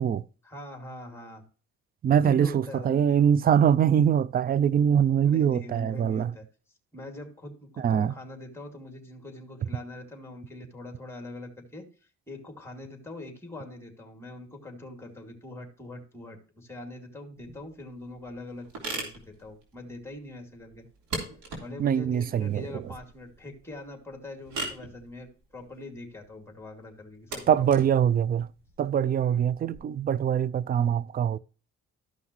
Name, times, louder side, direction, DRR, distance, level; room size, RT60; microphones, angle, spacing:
voice 1, 0.4-1.4 2.2-3.2 5.2-6.4 6.9-11.8 12.3-20.8 21.6-27.8 29.2-29.4, left 1 dB, 10° left, 2.4 m, -43 dB
voice 2, 2.0-6.3 7.8-8.1 21.8-22.9 27.5-28.5 28.8-31.4, right 8 dB, 30° right, 0.4 m, -23 dB
sound 1, 17.4-29.8, right 3 dB, 75° right, 3.3 m, -41 dB
13.5 x 5.7 x 3.1 m
cardioid pair, 90°, 30 cm